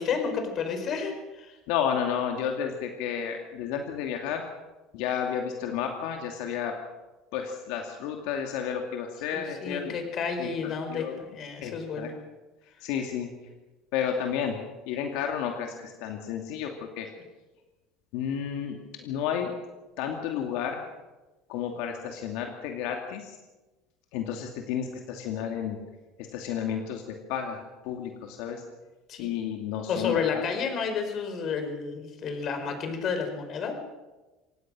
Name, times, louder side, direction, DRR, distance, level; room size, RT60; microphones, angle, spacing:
voice 1, 0.0-1.6 9.3-12.1 29.1-29.3 29.9-33.7, left 6 dB, 45° left, 6 dB, 4.7 m, -31 dB
voice 2, 1.7-4.4 4.9-6.8 7.3-10.0 10.4-11.2 11.6-12.1 12.8-13.3 13.9-14.6 14.9-17.1 18.1-19.5 20.0-20.9 21.5-23.4 24.1-25.8 26.2-28.6 29.2-30.4, left 8 dB, 75° left, 3 dB, 2.6 m, -32 dB
26.0 x 18.5 x 6.3 m, 1.1 s
supercardioid pair, 125°, 0 cm